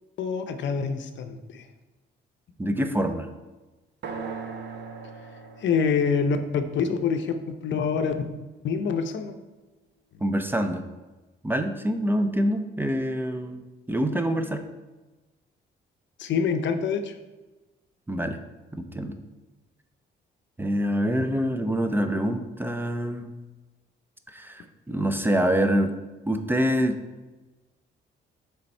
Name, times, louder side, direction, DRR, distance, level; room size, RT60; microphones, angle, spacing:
voice 1, 0.2-1.7 5.6-8.1 8.6-9.3 16.2-17.1, left 5 dB, 65° left, 8 dB, 0.6 m, -26 dB
voice 2, 2.6-3.3 10.2-10.8 11.4-13.6 13.9-14.6 18.1-18.4 18.7-19.1 20.6-23.3 24.3-25.9 26.3-27.0, equal, 10° right, 6 dB, 0.5 m, -25 dB
sound 1, 4.0-7.9, right 5 dB, 60° right, 0.8 m, -40 dB
6.7 x 3.5 x 4.3 m, 1.1 s
cardioid pair, 90°, 20 cm